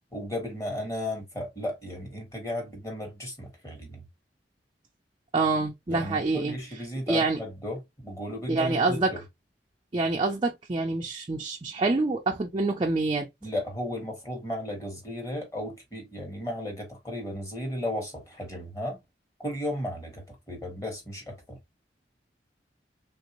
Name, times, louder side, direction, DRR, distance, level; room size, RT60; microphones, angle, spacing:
voice 1, 0.1-4.0 5.9-9.2 13.4-19.0 19.4-21.6, left 1 dB, 20° left, 1.3 m, -35 dB
voice 2, 5.3-6.6 7.1-7.4 8.5-9.1 9.9-13.3, right 3 dB, 30° right, 0.4 m, -26 dB
3.2 x 2.7 x 2.8 m
head